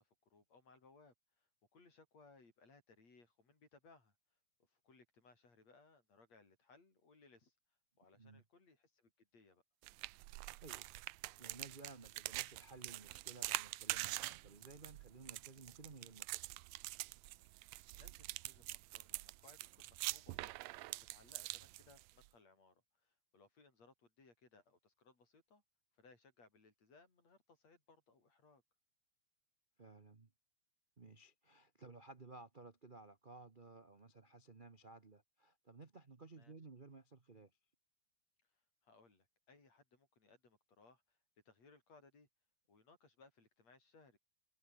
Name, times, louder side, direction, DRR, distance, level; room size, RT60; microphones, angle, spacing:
voice 1, 0.0-4.2 4.6-7.6 8.0-9.6 17.9-25.6 25.9-28.6 36.4-36.5 38.5-41.2 41.5-42.3 42.7-44.2, left 3 dB, 60° left, 7.4 m, -66 dB
sound 1, 9.8-22.3, right 19 dB, 80° right, 1.6 m, -45 dB
voice 2, 11.4-16.4 29.8-30.3 31.0-37.5, right 3 dB, 55° right, 0.5 m, -57 dB
omnidirectional pair, 3.4 m